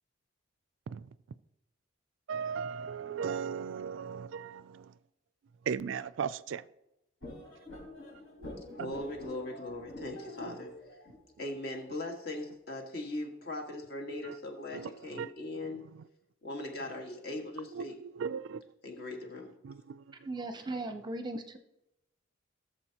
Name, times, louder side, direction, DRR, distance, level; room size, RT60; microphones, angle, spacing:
voice 1, 2.3-4.9 5.7-6.6 8.8-8.9 14.7-15.3 17.8-17.9 18.2-18.6 19.6-20.0, right 6 dB, 65° right, 0.3 m, -36 dB
sound 1, 7.2-12.3, left 1 dB, 80° left, 3.7 m, -47 dB
voice 2, 8.8-10.7 11.4-15.8 16.4-18.0 18.8-19.5, left 1 dB, 50° left, 1.7 m, -39 dB
voice 3, 20.2-21.6, right 2 dB, 20° right, 0.6 m, -37 dB
18.0 x 7.0 x 2.9 m
head